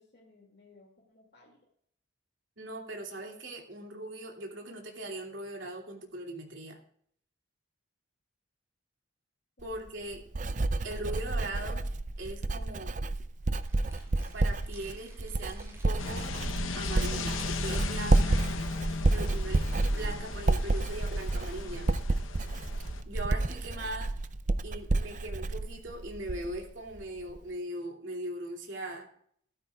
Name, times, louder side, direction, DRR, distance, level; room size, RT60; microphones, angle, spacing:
voice 1, 0.0-1.6 9.6-10.2, left 3 dB, 55° left, -3 dB, 2.3 m, -60 dB
voice 2, 2.6-6.8 9.6-10.2 10.8-11.8 12.2-13.0 14.3-16.3 16.7-18.4 19.1-19.7 19.9-21.9 23.1-24.1 24.6-29.1, right 1 dB, 65° right, 1 dB, 2.7 m, -40 dB
Writing, 9.6-26.7 26.9-27.4, right 2 dB, 40° right, 0.5 m, -30 dB
sound 1, 13.6-17.3, right 1 dB, 15° right, 5.1 m, -56 dB
sound 2, 16.0-23.0, left 4 dB, 75° left, 0.9 m, -37 dB
14.5 x 13.0 x 2.4 m, 0.64 s
head